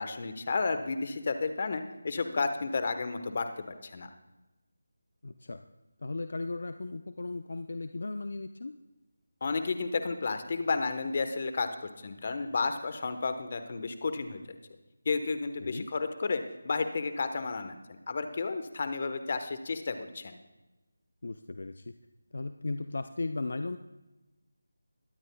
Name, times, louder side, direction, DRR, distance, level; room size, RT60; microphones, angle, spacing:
voice 1, 0.0-4.1 9.4-14.4 15.0-20.4, left 4 dB, 40° left, 9 dB, 1.2 m, -32 dB
voice 2, 5.2-5.7 6.0-8.7 15.6-15.9 21.2-21.9 22.3-23.8, left 3 dB, 60° left, 9 dB, 0.6 m, -36 dB
22.5 x 12.5 x 2.3 m, 1.1 s
figure-of-eight pair, 170°, 0 cm